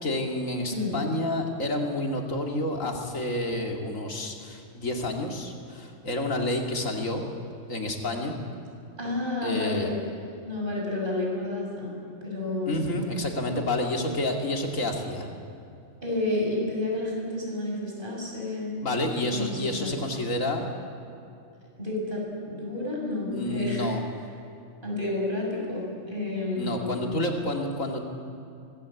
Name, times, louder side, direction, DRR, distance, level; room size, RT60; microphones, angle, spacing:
voice 1, 0.0-7.2 7.7-8.4 9.4-9.9 12.7-15.3 18.8-20.7 23.3-24.0 26.6-28.1, left 1 dB, 80° left, 2 dB, 2.8 m, -29 dB
voice 2, 9.0-9.9 10.4-13.1 16.0-18.7 19.1-19.9 21.8-23.9 24.8-27.2, left 2 dB, 40° right, -2 dB, 6.3 m, -30 dB
24.5 x 18.5 x 8.4 m, 2.5 s
omnidirectional pair, 1.4 m